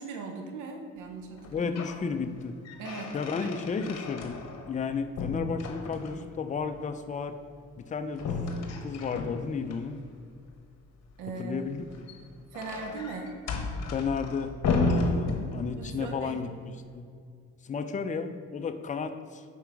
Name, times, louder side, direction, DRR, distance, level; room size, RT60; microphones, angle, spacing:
voice 1, 0.0-2.2 2.8-3.7 11.2-11.7 12.5-13.3 15.8-16.4, right 4 dB, 90° right, 3 dB, 0.8 m, -39 dB
sound 1, 1.4-2.0 2.4-4.8 5.2-6.4 8.2-9.8 11.8-16.0, left 3 dB, 60° left, 0.9 m, -33 dB
voice 2, 1.5-2.6 3.1-7.4 7.8-8.4 8.8-10.0 11.4-12.1 13.9-14.6 14.8-17.1 17.6-19.4, left 5 dB, 25° left, 8 dB, 0.4 m, -33 dB
5.8 x 4.6 x 4.6 m, 2.2 s
cardioid pair, 90°, 30 cm